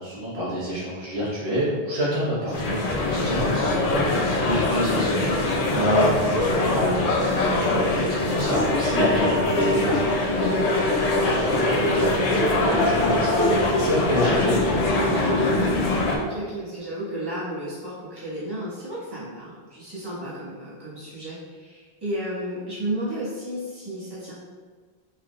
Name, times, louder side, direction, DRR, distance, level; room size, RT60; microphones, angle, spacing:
voice 1, 0.0-15.3, equal, 70° right, -9 dB, 1.6 m, -28 dB
voice 2, 2.3-2.8 5.7-6.0 11.0-11.5 16.1-24.3, right 1 dB, 20° right, -11 dB, 1.6 m, -33 dB
sound 1, 2.5-16.2, left 2 dB, 50° left, 0.5 m, -24 dB
sound 2, 8.4-15.9, left 1 dB, 90° left, 0.9 m, -25 dB
4.3 x 3.9 x 2.4 m, 1.5 s
omnidirectional pair, 1.1 m